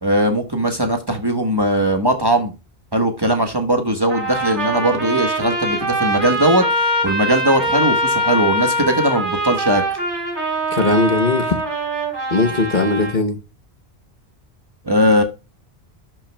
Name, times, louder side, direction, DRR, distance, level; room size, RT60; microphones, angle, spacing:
voice 1, 0.0-2.5 2.9-9.8 14.8-15.2, right 1 dB, 25° right, 1.3 m, -19 dB
Trumpet, 4.1-13.2, right 1 dB, 50° right, 3.3 m, -23 dB
voice 2, 10.7-11.6 12.3-13.4, left 3 dB, 45° left, 1.1 m, -18 dB
11.5 x 5.8 x 2.2 m
omnidirectional pair, 1.1 m